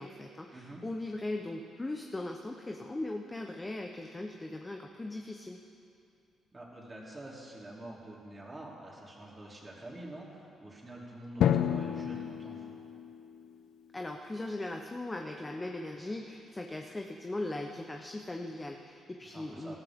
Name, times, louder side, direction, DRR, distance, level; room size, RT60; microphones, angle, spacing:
voice 1, 0.0-5.6 13.9-19.7, left 2 dB, 20° left, 2 dB, 0.8 m, -39 dB
voice 2, 0.5-0.8 6.5-12.6 19.3-19.8, right 1 dB, 25° right, -3 dB, 3.2 m, -47 dB
Drum, 11.4-13.9, left 9 dB, 75° left, 0.5 m, -31 dB
19.0 x 13.5 x 3.7 m, 2.6 s
cardioid pair, 90°, 0 cm